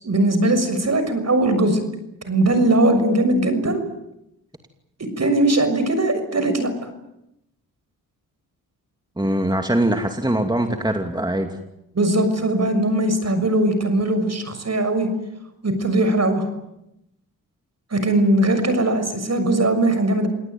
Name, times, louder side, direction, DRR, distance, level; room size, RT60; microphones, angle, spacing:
voice 1, 0.0-1.8 2.3-3.8 5.0-6.7 11.9-15.1 15.6-16.5 17.9-20.3, right 1 dB, 45° right, 9 dB, 6.6 m, -20 dB
voice 2, 9.2-11.6, right 1 dB, 10° right, 5 dB, 2.7 m, -22 dB
28.5 x 18.5 x 9.3 m, 0.86 s
cardioid pair, 55°, 37 cm